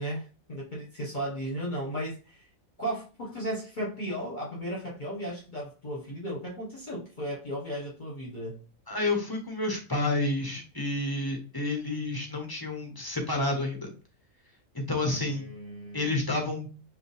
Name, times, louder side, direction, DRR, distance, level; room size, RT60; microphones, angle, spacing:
voice 1, 0.0-2.4 2.8-8.6 15.1-16.2, right 1 dB, 35° left, 1.6 m, -35 dB
voice 2, 8.9-13.9 14.7-15.5 15.9-16.7, left 2 dB, 20° left, 0.9 m, -30 dB
5.1 x 2.5 x 3.4 m
omnidirectional pair, 1.4 m